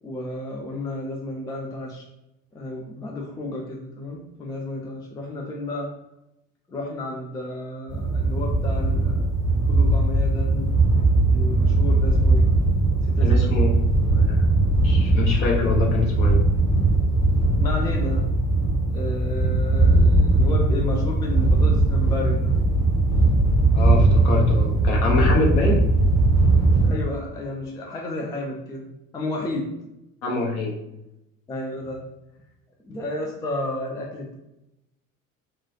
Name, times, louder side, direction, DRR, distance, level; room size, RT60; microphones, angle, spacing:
voice 1, 0.0-2.1 2.5-5.9 6.7-10.7 11.3-12.5 13.0-13.6 17.6-18.3 18.9-22.5 26.8-29.7 31.5-32.0 32.8-34.3, left 1 dB, 10° left, 0 dB, 0.4 m, -32 dB
sound 1, 7.9-26.9, right 2 dB, 35° left, 1.3 m, -19 dB
voice 2, 13.2-14.4 14.8-16.4 23.7-25.8 30.2-30.8, left 3 dB, 55° left, -1 dB, 0.9 m, -25 dB
2.9 x 2.3 x 2.8 m, 0.89 s
figure-of-eight pair, 60°, 41 cm